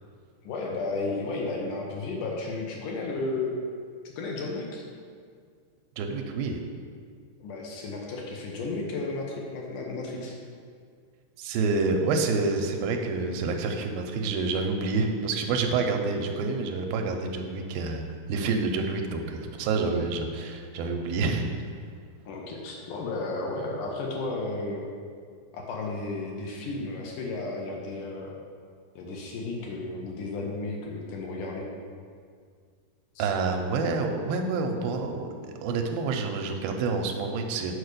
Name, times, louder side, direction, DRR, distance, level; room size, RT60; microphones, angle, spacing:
voice 1, 0.4-3.6 4.2-4.9 7.4-10.4 22.3-24.8 25.5-28.3 29.0-31.6 33.2-33.3, left 3 dB, 70° left, -1 dB, 2.2 m, -33 dB
voice 2, 6.0-6.6 11.4-18.0 18.3-21.5 33.2-37.7, right 4 dB, 85° right, 4 dB, 2.5 m, -28 dB
6.6 x 4.8 x 6.6 m, 2.1 s
omnidirectional pair, 4.1 m